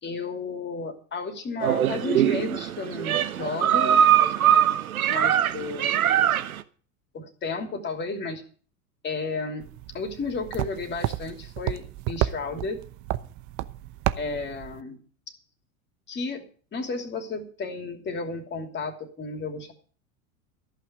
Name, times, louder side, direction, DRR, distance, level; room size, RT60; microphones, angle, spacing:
voice 1, 0.0-4.3 5.1-6.0 7.1-8.4 9.0-9.6 9.9-12.8 14.2-15.0 15.3-15.4 16.1-19.7, left 4 dB, 25° left, 6 dB, 3.0 m, -33 dB
sound 1, 1.6-6.6, right 10 dB, 80° right, 1.0 m, -22 dB
sound 2, 9.6-14.8, right 14 dB, 45° right, 0.9 m, -32 dB
14.0 x 5.8 x 9.5 m, 0.43 s
hypercardioid pair, 90°, 42 cm